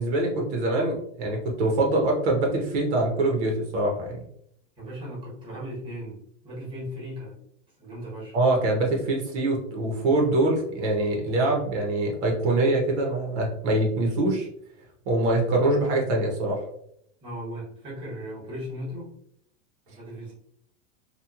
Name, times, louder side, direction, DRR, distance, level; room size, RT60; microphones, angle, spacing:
voice 1, 0.0-4.2 8.3-14.5 15.1-16.6, right 2 dB, 60° right, 0 dB, 0.8 m, -24 dB
voice 2, 4.8-7.4 7.8-8.4 17.2-19.1 19.9-20.3, equal, 15° right, -5 dB, 1.0 m, -37 dB
2.9 x 2.3 x 2.3 m, 0.70 s
supercardioid pair, 150°, 38 cm